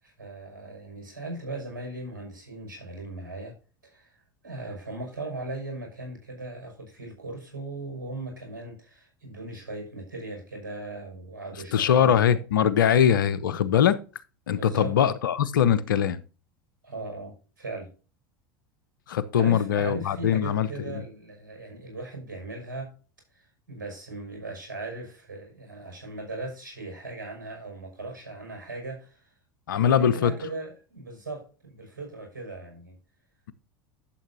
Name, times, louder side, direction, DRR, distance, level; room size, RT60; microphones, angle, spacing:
voice 1, 0.0-3.6 3.8-12.2 14.5-15.0 16.8-17.9 19.3-22.9 23.3-29.3 29.7-33.0, right 2 dB, 80° right, 5.9 m, -38 dB
voice 2, 11.7-14.0 14.5-16.2 19.1-21.0 29.7-30.3, left 9 dB, 80° left, 0.8 m, -22 dB
11.5 x 7.7 x 2.7 m
hypercardioid pair, 85°, 11 cm